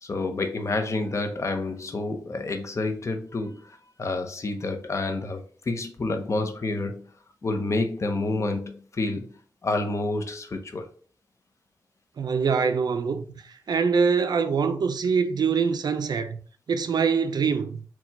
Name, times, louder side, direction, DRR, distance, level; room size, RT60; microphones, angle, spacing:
voice 1, 0.0-7.1 7.4-9.4 9.6-10.9, left 2 dB, 45° left, 0.7 m, -29 dB
voice 2, 12.2-16.4 16.7-17.8, right 5 dB, 70° right, 0.5 m, -24 dB
4.5 x 2.3 x 4.0 m
wide cardioid pair, 115°, 7 cm